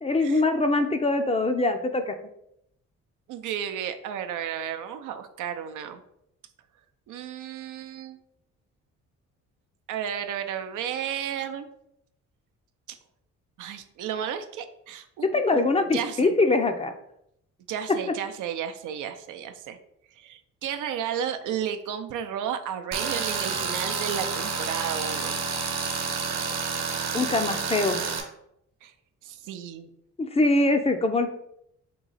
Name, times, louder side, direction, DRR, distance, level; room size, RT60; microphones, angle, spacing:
voice 1, 0.0-2.1 15.2-16.9 27.1-28.0 30.2-31.3, left 2 dB, 20° left, 7 dB, 0.5 m, -23 dB
voice 2, 3.3-6.0 7.1-8.2 9.9-11.7 12.9-13.0 13.6-15.6 15.9-16.3 17.7-19.8 20.2-25.4 28.8-28.9 29.2-29.9, right 9 dB, 80° right, 8 dB, 0.5 m, -33 dB
Tools, 22.9-28.2, right 5 dB, 60° right, 1.0 m, -29 dB
3.8 x 2.9 x 4.0 m, 0.76 s
cardioid pair, 90°, 30 cm